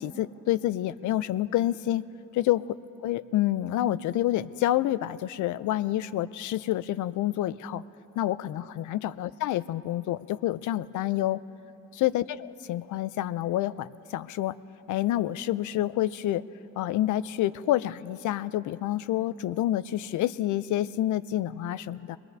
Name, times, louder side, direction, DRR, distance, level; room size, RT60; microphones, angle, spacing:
voice 1, 0.0-2.0 2.3-2.7 3.0-7.8 8.2-11.4 11.9-14.6 14.9-16.4 16.8-22.2, left 13 dB, 75° left, 16 dB, 0.5 m, -28 dB
23.0 x 21.5 x 2.7 m, 3.0 s
cardioid pair, 90°, 30 cm